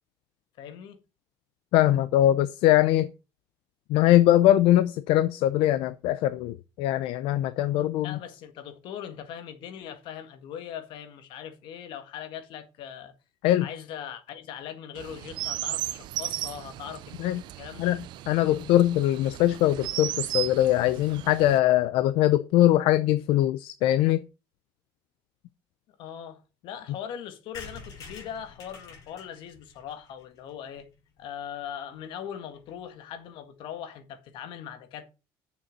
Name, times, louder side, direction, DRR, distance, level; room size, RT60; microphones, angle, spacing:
voice 1, 0.6-1.0 8.0-13.1 13.6-17.1 17.6-17.9 26.0-30.9 31.2-35.0, left 9 dB, 60° left, 1.8 m, -40 dB
voice 2, 1.7-3.1 3.9-8.2 13.4-13.6 17.2-17.4 17.8-24.2, left 13 dB, 75° left, 0.6 m, -22 dB
Chirp tweet, 14.9-21.6, right 15 dB, 55° right, 0.5 m, -35 dB
sound 1, 27.5-31.2 31.7-31.8 31.9-32.0 32.3-32.4 32.6-32.8, left 5 dB, 45° left, 4.1 m, -47 dB
7.1 x 6.7 x 7.9 m
cardioid pair, 180°, 9 cm